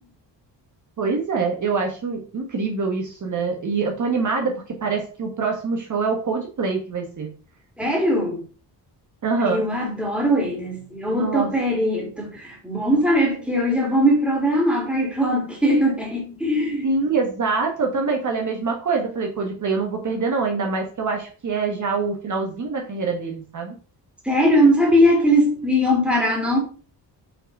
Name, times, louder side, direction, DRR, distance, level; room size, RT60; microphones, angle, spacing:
voice 1, 1.0-7.3 9.2-9.6 11.1-11.5 16.8-23.7, right 4 dB, 45° right, 1.4 m, -25 dB
voice 2, 7.8-8.4 9.5-16.9 24.2-26.6, equal, 5° right, 2.7 m, -20 dB
5.9 x 5.5 x 5.4 m
wide cardioid pair, 155°, 42 cm